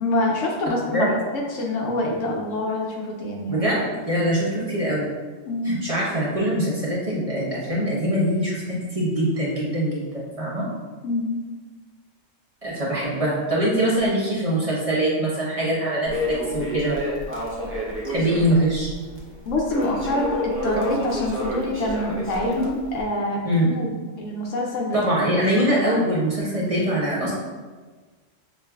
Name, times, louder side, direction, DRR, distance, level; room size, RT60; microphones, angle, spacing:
voice 1, 0.0-3.6 5.5-5.8 11.0-11.4 19.5-25.3 27.2-27.3, left 1 dB, 75° left, -1 dB, 0.9 m, -26 dB
voice 2, 3.5-5.1 5.6-10.6 12.6-16.9 18.0-18.9 23.4-23.6 24.9-27.3, right 1 dB, 30° right, -7 dB, 0.8 m, -23 dB
Crackle, 16.1-23.0, equal, 15° right, 0.5 m, -30 dB
6.1 x 2.5 x 2.3 m, 1.4 s
omnidirectional pair, 1.3 m